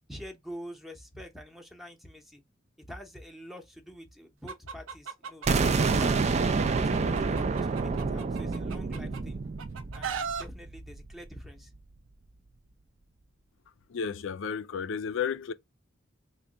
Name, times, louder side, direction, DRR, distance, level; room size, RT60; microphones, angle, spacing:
voice 1, 0.1-2.4 2.9-6.3 6.7-9.4 9.9-11.7, equal, ahead, 0.7 m, -46 dB
Chicken rooster, 4.5-6.2 6.6-9.2 9.6-10.4, right 6 dB, 85° right, 0.5 m, -37 dB
sound 1, 5.5-11.2, right 4 dB, 35° right, 0.4 m, -28 dB
voice 2, 13.9-15.5, left 6 dB, 70° left, 0.4 m, -32 dB
3.4 x 2.2 x 3.8 m
head